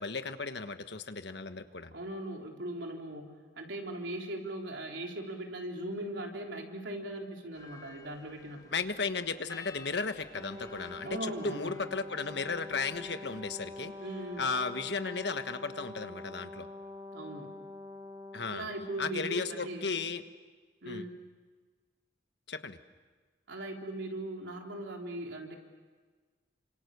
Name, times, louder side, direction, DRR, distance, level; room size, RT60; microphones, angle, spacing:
voice 1, 0.0-1.9 8.7-13.9 14.4-16.7 18.3-18.7 19.0-20.2 20.8-21.1 22.5-22.8, left 4 dB, 65° left, 9 dB, 1.4 m, -35 dB
voice 2, 1.9-8.7 11.1-11.8 14.0-14.6 17.1-17.6 18.5-20.0 20.8-21.3 23.5-25.6, right 1 dB, 85° right, 1 dB, 3.8 m, -39 dB
sound 1, 7.5-15.0, left 4 dB, 20° left, 3.0 m, -55 dB
Brass instrument, 10.3-19.0, left 2 dB, 20° right, 1.2 m, -45 dB
29.0 x 26.0 x 6.9 m, 1.4 s
head